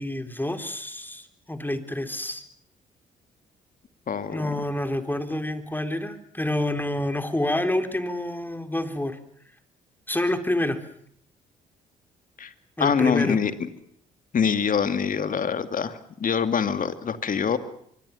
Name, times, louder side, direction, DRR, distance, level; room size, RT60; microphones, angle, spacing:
voice 1, 0.0-2.4 4.3-9.2 10.1-10.8 12.8-13.4, left 1 dB, 10° left, 8 dB, 3.8 m, -28 dB
voice 2, 4.1-4.6 12.4-12.5 12.8-13.7 14.3-17.6, left 6 dB, 50° left, 10 dB, 2.5 m, -25 dB
24.0 x 23.5 x 7.2 m, 0.68 s
hypercardioid pair, 50°, 18 cm